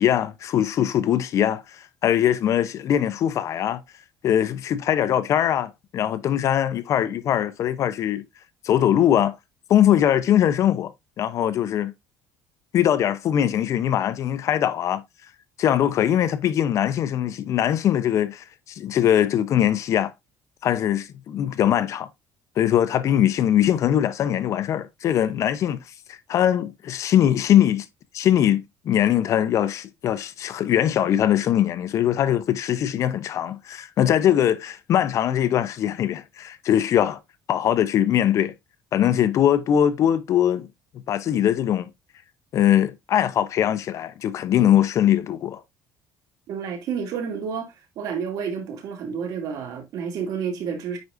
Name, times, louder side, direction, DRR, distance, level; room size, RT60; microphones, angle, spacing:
voice 1, 0.0-3.8 4.2-8.2 8.6-9.3 9.7-10.9 11.2-11.9 12.7-15.0 15.6-20.1 20.6-22.1 22.6-25.8 26.1-27.9 28.1-37.2 37.5-38.5 38.9-40.7 41.1-41.9 42.5-45.6, left 10 dB, 50° left, 0.7 m, -21 dB
voice 2, 46.5-47.7 48.0-51.0, right 6 dB, 65° right, 2.6 m, -30 dB
9.4 x 4.8 x 2.6 m
cardioid pair, 125°, 7 cm